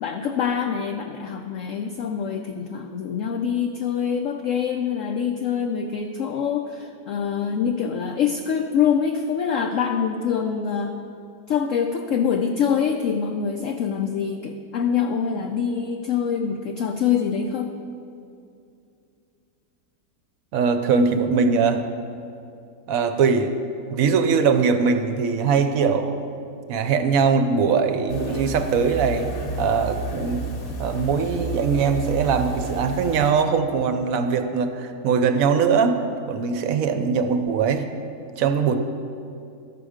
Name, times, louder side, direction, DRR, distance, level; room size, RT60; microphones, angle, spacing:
voice 1, 0.0-11.0 11.5-17.8, left 7 dB, 70° left, 4 dB, 0.7 m, -25 dB
voice 2, 20.5-21.8 22.9-23.5 23.9-26.3 26.7-29.3 29.6-30.5 30.8-37.9 38.4-38.7, right 5 dB, 65° right, 8 dB, 1.0 m, -21 dB
sound 1, 28.1-33.3, right 2 dB, 40° left, 0.9 m, -31 dB
12.5 x 6.8 x 4.9 m, 2.6 s
omnidirectional pair, 1.8 m